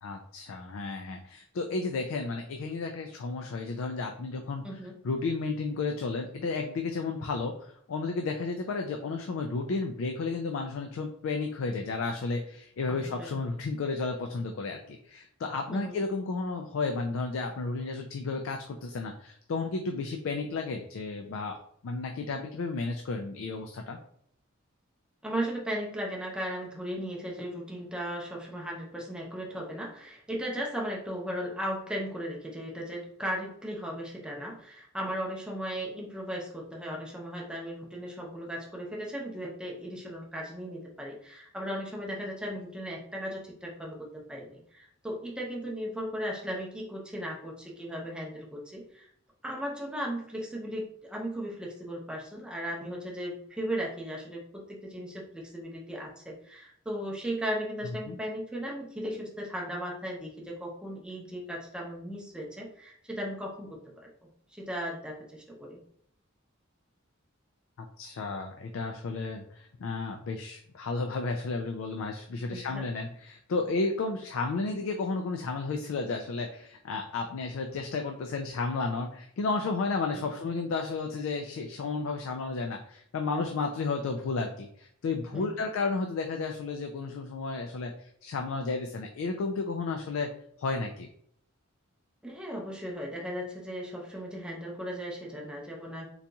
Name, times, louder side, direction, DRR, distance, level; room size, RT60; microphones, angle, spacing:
voice 1, 0.0-4.7 5.0-21.6 21.8-24.0 58.1-58.2 67.8-90.3 90.6-91.1, left 3 dB, 75° left, 4 dB, 0.4 m, -32 dB
voice 2, 4.6-4.9 12.9-13.3 15.7-16.0 25.2-49.1 49.4-64.1 64.5-65.8 72.5-72.8 80.1-80.3 85.3-85.6 92.2-96.0, equal, 5° right, -2 dB, 0.6 m, -36 dB
3.9 x 2.8 x 2.3 m, 0.66 s
head